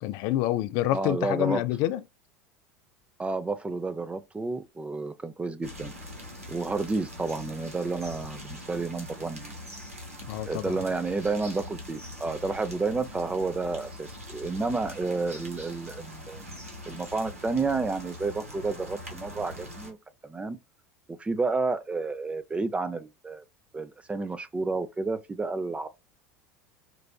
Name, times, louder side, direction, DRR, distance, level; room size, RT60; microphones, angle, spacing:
voice 1, 0.0-2.0 10.3-10.8, left 14 dB, 55° left, 0.4 m, -27 dB
voice 2, 0.9-1.6 3.2-5.9 6.5-9.5 10.5-16.4 16.9-20.0 20.2-20.6 21.1-23.4 23.7-25.9, right 3 dB, 15° right, 0.6 m, -30 dB
sound 1, 5.6-19.9, left 1 dB, 90° right, 1.1 m, -42 dB
4.6 x 2.4 x 2.3 m
figure-of-eight pair, 75°, 7 cm